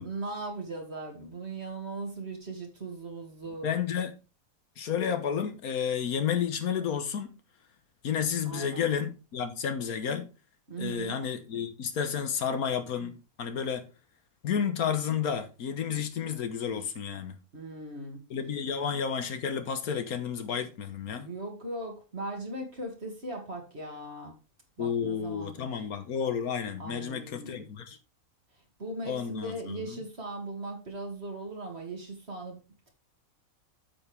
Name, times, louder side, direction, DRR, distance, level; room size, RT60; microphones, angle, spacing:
voice 1, 0.0-3.7 8.5-8.8 10.7-11.2 17.5-18.2 21.2-24.4 24.8-25.8 26.8-27.7 28.8-32.6, right 2 dB, 45° right, 2.6 m, -39 dB
voice 2, 3.6-4.1 4.8-7.3 8.0-10.3 10.8-13.9 14.4-17.4 18.3-21.3 24.8-28.0 29.0-30.0, left 7 dB, 85° left, 1.6 m, -31 dB
8.6 x 7.3 x 3.4 m
omnidirectional pair, 1.5 m